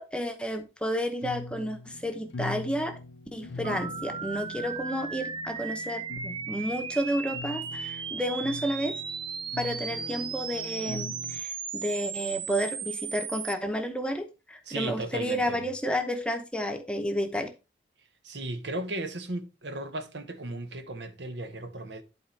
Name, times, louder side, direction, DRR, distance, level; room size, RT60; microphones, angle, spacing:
voice 1, 0.0-2.9 3.3-8.9 9.6-17.5, equal, 5° left, 0.8 m, -31 dB
sound 1, 1.2-11.4, left 3 dB, 80° left, 0.7 m, -42 dB
sound 2, 3.6-13.5, right 6 dB, 25° right, 0.5 m, -36 dB
voice 2, 14.6-15.6 18.2-22.0, right 2 dB, 70° right, 1.0 m, -36 dB
11.0 x 4.3 x 3.3 m
head